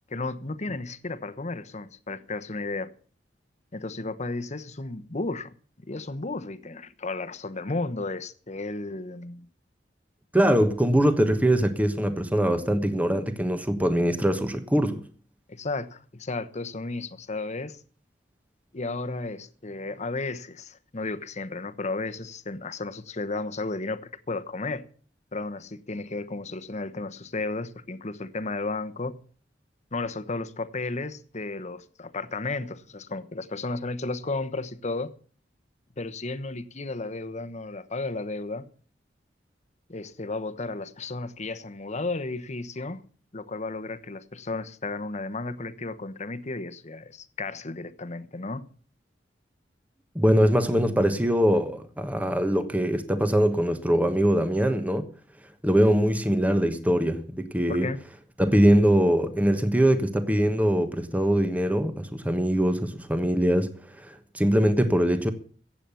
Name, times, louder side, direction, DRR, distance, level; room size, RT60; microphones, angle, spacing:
voice 1, 0.1-2.9 3.7-5.5 5.8-9.5 15.5-17.8 18.7-24.8 25.3-29.2 29.9-35.1 36.0-38.6 39.9-43.0 43.3-48.6 57.7-58.0, left 3 dB, 40° left, 1.1 m, -33 dB
voice 2, 10.3-15.0 50.1-55.1 55.6-57.9 58.4-63.7 64.0-65.3, equal, 10° right, 1.2 m, -22 dB
15.5 x 8.7 x 7.0 m
head